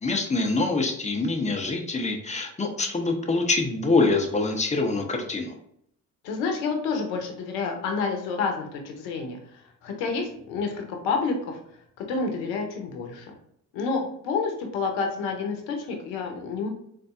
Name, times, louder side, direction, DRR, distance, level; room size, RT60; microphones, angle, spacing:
voice 1, 0.0-5.5, left 3 dB, 15° left, 3 dB, 0.8 m, -25 dB
voice 2, 6.2-11.6 12.0-13.3 13.7-16.7, left 4 dB, 80° left, 4 dB, 0.8 m, -29 dB
3.8 x 2.7 x 2.4 m, 0.72 s
hypercardioid pair, 45°, 41 cm